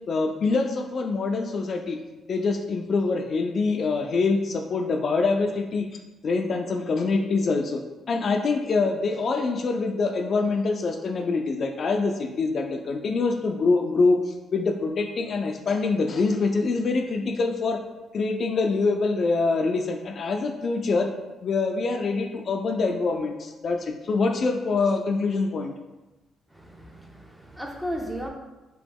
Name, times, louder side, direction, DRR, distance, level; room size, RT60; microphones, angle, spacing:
voice 1, 0.1-2.0 2.3-5.9 6.2-7.8 8.1-17.8 18.1-21.1 21.4-25.7, left 3 dB, 50° left, 4 dB, 0.3 m, -25 dB
voice 2, 26.5-28.3, equal, 10° right, 1 dB, 0.6 m, -35 dB
3.0 x 3.0 x 3.4 m, 1.1 s
cardioid pair, 90°, 0 cm